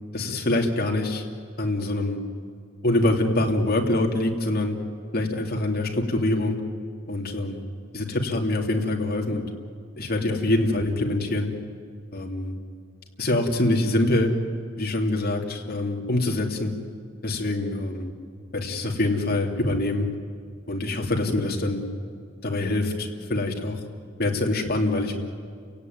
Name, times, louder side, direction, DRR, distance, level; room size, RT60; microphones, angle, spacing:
voice 1, 0.1-1.2 1.6-2.2 2.8-4.8 5.1-6.6 7.1-7.6 7.9-9.4 10.0-11.5 12.1-12.5 13.2-14.3 14.8-16.7 17.2-18.1 18.5-20.1 20.7-21.8 22.4-23.8 24.2-25.1, left 1 dB, 50° left, 1 dB, 2.8 m, -25 dB
30.0 x 17.0 x 9.5 m, 2.1 s
head